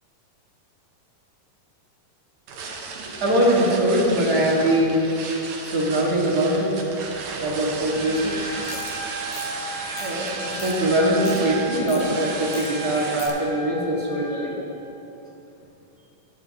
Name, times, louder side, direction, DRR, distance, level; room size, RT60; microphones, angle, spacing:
sound 1, 2.5-13.3, right 4 dB, 65° right, 2.2 m, -34 dB
voice 1, 3.2-5.0 5.7-6.7 7.4-8.4 8.8-8.9 10.0-14.6, right 1 dB, 35° right, -4 dB, 1.8 m, -22 dB
Trumpet, 7.9-14.6, right 2 dB, 5° left, 2.5 m, -35 dB
sound 2, 8.6-8.9 9.3-9.5 10.0-10.3 10.6-10.7 11.1-11.4 11.9-12.0 12.5-12.7 12.9-13.3, left 7 dB, 85° left, 2.7 m, -39 dB
16.0 x 11.5 x 2.9 m, 2.9 s
omnidirectional pair, 3.9 m